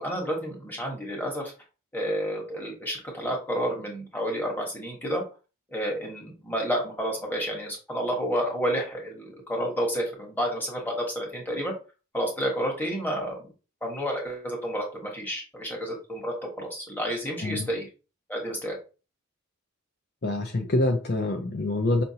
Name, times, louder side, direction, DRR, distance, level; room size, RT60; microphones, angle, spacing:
voice 1, 0.0-1.5 1.9-5.2 5.7-11.7 12.1-13.5 13.8-17.9 18.3-18.8, equal, 10° left, -1 dB, 1.2 m, -30 dB
voice 2, 20.2-22.0, left 2 dB, 45° left, 4 dB, 0.5 m, -26 dB
5.5 x 2.6 x 2.8 m, 0.33 s
head